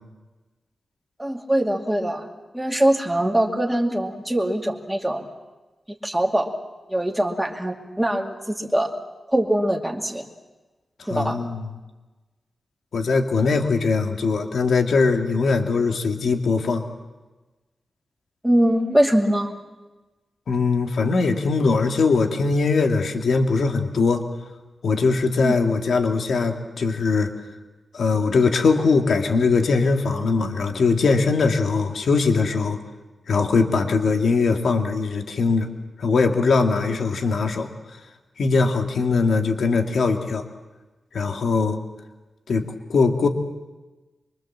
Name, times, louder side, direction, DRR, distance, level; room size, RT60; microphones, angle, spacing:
voice 1, 1.2-2.3 2.5-5.2 6.0-6.5 6.9-8.9 9.3-10.3 11.1-11.4 18.4-19.6 25.4-25.6, right 1 dB, 5° right, 1 dB, 2.4 m, -22 dB
voice 2, 11.0-11.7 12.9-16.8 20.5-24.2 24.8-27.3 27.9-32.8 33.3-35.7 36.0-37.7 38.4-40.4 41.1-41.8 42.5-42.6 42.9-43.3, left 4 dB, 70° left, 4 dB, 2.2 m, -21 dB
25.5 x 23.5 x 7.5 m, 1.2 s
wide cardioid pair, 150°, 0 cm